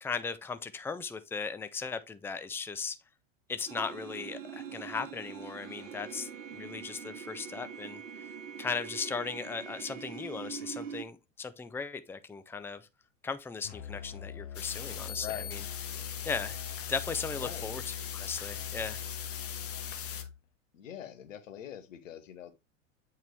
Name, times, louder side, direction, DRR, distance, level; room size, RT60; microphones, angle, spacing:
voice 1, 0.0-3.0 3.5-6.3 6.5-8.2 8.6-12.9 13.2-15.6 16.3-16.6 16.9-19.0, left 5 dB, 5° left, 0.6 m, -37 dB
sound 1, 3.7-11.0, right 7 dB, 85° right, 1.0 m, -43 dB
Musical instrument, 13.6-20.4, left 8 dB, 55° left, 0.8 m, -42 dB
sound 2, 14.5-20.2, left 8 dB, 35° left, 1.4 m, -41 dB
voice 2, 15.1-15.5 15.9-16.0 17.4-17.7 20.7-22.5, left 11 dB, 80° left, 1.2 m, -43 dB
8.1 x 4.5 x 3.3 m
hypercardioid pair, 90°, 38 cm